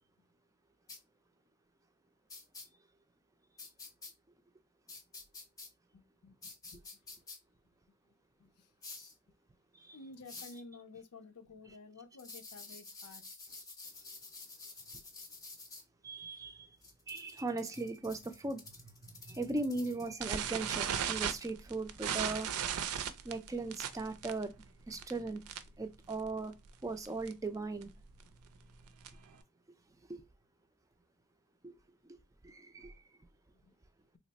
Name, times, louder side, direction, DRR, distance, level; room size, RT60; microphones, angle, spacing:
sound 1, 0.9-1.0 2.3-2.6 3.6-4.1 4.9-5.7 6.4-7.4 8.8-9.1 10.3-10.6 12.2-15.8 16.8-20.1, left 3 dB, 15° left, 0.7 m, -49 dB
voice 1, 5.9-6.9 8.4-8.7 9.9-13.2 33.5-33.7, left 3 dB, 85° left, 0.6 m, -53 dB
voice 2, 16.0-16.7 17.1-18.6 19.0-22.5 23.2-24.6 24.9-25.4 25.8-26.5 26.8-27.9 30.1-30.3 31.6-31.7 32.4-32.9, right 3 dB, 15° right, 0.3 m, -38 dB
sound 2, 20.2-25.8 26.1-26.4 26.7-26.8 27.1-27.3 27.8-29.4, right 8 dB, 75° right, 0.4 m, -37 dB
3.2 x 2.1 x 4.0 m
head